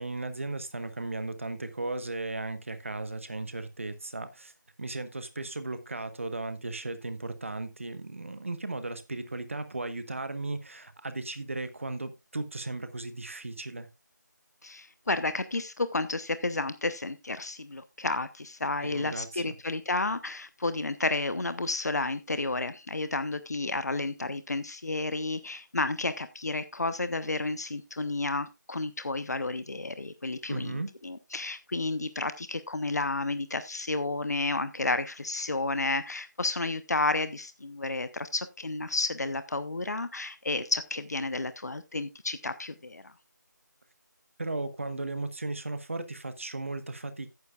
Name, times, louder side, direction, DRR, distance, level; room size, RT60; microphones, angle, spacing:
voice 1, 0.0-4.5 4.8-13.9 18.8-19.6 30.5-30.9 44.4-47.3, right 2 dB, 45° right, 1.2 m, -36 dB
voice 2, 14.6-43.1, left 2 dB, 60° left, 0.8 m, -31 dB
13.0 x 9.6 x 2.4 m
figure-of-eight pair, 175°, 10 cm